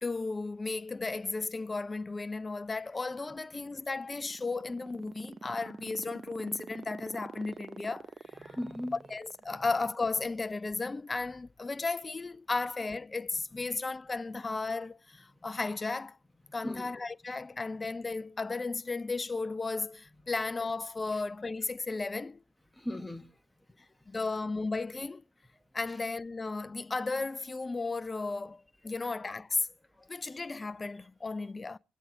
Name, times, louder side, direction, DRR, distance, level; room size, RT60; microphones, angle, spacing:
voice 1, 0.0-8.1 9.1-16.2 16.5-22.4 24.1-25.2 25.7-29.7 30.1-31.8, left 3 dB, 30° left, 0.5 m, -34 dB
sound 1, 3.9-10.5, right 5 dB, 45° right, 0.8 m, -45 dB
voice 2, 8.4-8.9 9.5-9.6 16.6-16.9 22.7-23.3 29.0-29.1 29.9-30.4, left 1 dB, 5° left, 1.5 m, -39 dB
24.0 x 8.3 x 3.1 m
hypercardioid pair, 45°, 0 cm